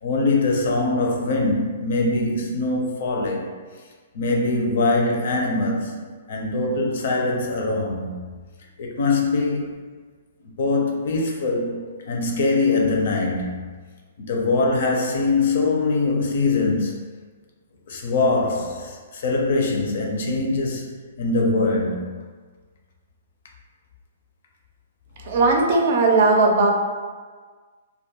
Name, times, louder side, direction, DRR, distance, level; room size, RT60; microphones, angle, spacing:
voice 1, 0.0-3.5 4.1-8.1 8.8-9.8 10.4-13.7 14.2-17.0 17.9-20.9 21.2-22.1, left 3 dB, 65° left, 0 dB, 0.5 m, -23 dB
voice 2, 25.2-26.7, right 3 dB, 55° right, 1 dB, 0.5 m, -17 dB
2.3 x 2.1 x 2.8 m, 1.5 s
hypercardioid pair, 135°, 0 cm